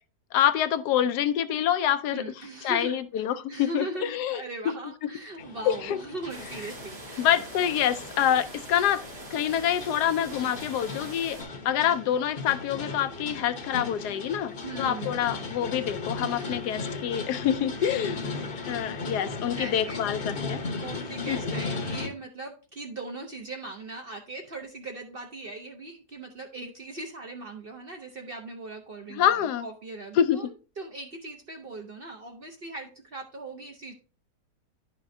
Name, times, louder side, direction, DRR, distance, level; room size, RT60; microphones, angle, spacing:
voice 1, 0.3-2.3 2.6-4.4 5.7-6.0 7.2-9.0 9.3-11.4 11.6-14.5 14.8-18.2 18.7-20.6 21.3-21.4 29.1-29.7 30.2-30.4, left 10 dB, 80° left, 1.1 m, -26 dB
voice 2, 2.1-7.4 14.6-15.3 16.3-16.6 17.8-18.8 19.5-20.0 20.7-33.9, right 2 dB, 45° right, 0.7 m, -40 dB
sound 1, 5.4-22.1, left 3 dB, 40° left, 0.9 m, -37 dB
sound 2, 6.3-11.4, right 1 dB, 85° right, 2.9 m, -43 dB
10.5 x 5.7 x 2.6 m
omnidirectional pair, 1.8 m